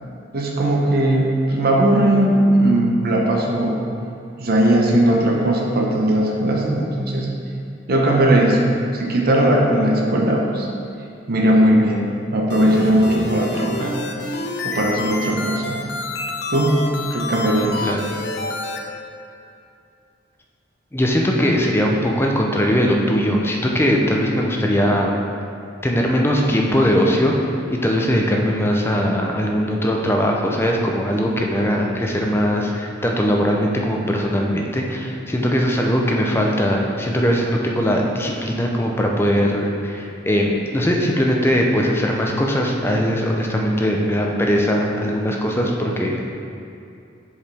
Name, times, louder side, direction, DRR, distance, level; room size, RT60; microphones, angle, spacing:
voice 1, 0.3-3.8 4.4-7.3 7.9-10.7 11.3-14.0 14.3-14.4 14.6-15.8 16.5-16.8 17.1-17.9, right 1 dB, 55° right, -1 dB, 0.8 m, -18 dB
sound 1, 12.5-18.8, left 2 dB, 60° left, 0.7 m, -28 dB
voice 2, 20.9-25.2 25.8-46.2, equal, 15° left, 0 dB, 0.6 m, -20 dB
7.2 x 4.9 x 3.4 m, 2.5 s
head